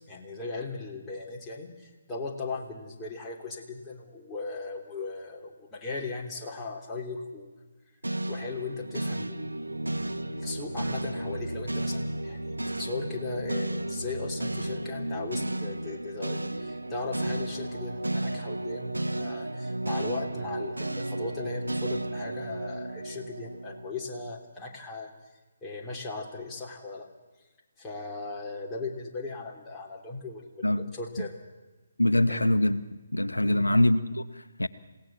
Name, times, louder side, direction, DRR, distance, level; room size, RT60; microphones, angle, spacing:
voice 1, 0.1-7.5 8.3-9.6 10.3-25.1 25.6-27.1 27.8-31.4 32.3-32.5 33.4-33.8, left 3 dB, 10° left, 3.4 m, -38 dB
sound 1, 8.0-24.3, right 1 dB, 85° right, 1.0 m, -33 dB
voice 2, 32.0-32.8 33.1-34.7, left 1 dB, 85° left, 0.9 m, -24 dB
28.0 x 17.5 x 7.7 m
figure-of-eight pair, 140°, 0 cm